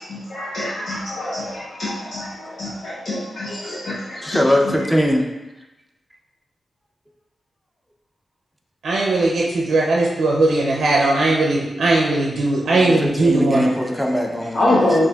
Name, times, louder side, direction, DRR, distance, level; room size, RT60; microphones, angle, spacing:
voice 1, 0.0-4.4 4.7-4.8 13.7-13.8 14.5-15.1, left 1 dB, 65° left, -7 dB, 0.7 m, -24 dB
voice 2, 4.2-5.3 12.7-14.9, equal, 5° left, 1 dB, 0.5 m, -21 dB
voice 3, 8.8-13.7, right 2 dB, 85° right, -2 dB, 0.5 m, -18 dB
6.2 x 2.5 x 2.3 m, 1.0 s
wide cardioid pair, 100°, 0 cm